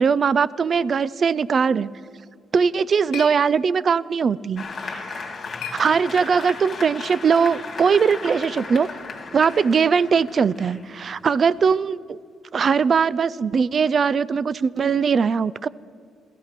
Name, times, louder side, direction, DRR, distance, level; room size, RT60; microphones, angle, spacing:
voice 1, 0.0-1.9 2.5-5.3 5.7-8.9 9.3-12.2 12.5-15.7, right 6 dB, 45° right, 20 dB, 0.4 m, -20 dB
sound 1, 2.4-6.6, left 10 dB, 85° left, 0.8 m, -43 dB
Applause, 4.6-11.8, left 4 dB, 40° left, 2.4 m, -36 dB
16.5 x 14.5 x 5.8 m, 2.2 s
cardioid pair, 90°, 0 cm